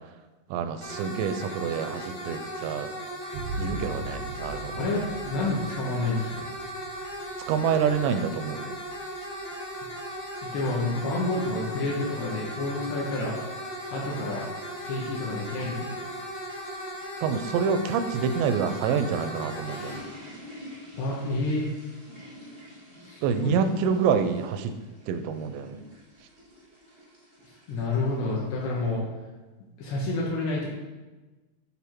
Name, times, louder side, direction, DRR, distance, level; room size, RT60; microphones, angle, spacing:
voice 1, 0.5-2.9 3.6-4.9 7.5-8.7 17.2-20.1 23.2-24.7 25.1-25.9, right 6 dB, 85° right, 9 dB, 2.6 m, -27 dB
sound 1, 0.8-20.0, equal, 45° left, 1.6 m, -37 dB
sound 2, 3.3-10.7, right 1 dB, 65° right, 1.2 m, -40 dB
voice 2, 4.8-6.5 10.4-13.4 13.7-14.4 14.8-16.0 21.0-21.7 23.0-23.7 27.7-29.0 29.8-30.7, left 2 dB, 75° left, -4 dB, 2.9 m, -29 dB
sound 3, 18.9-28.9, equal, 35° right, 0.9 m, -48 dB
9.5 x 3.4 x 4.5 m, 1.2 s
omnidirectional pair, 5.3 m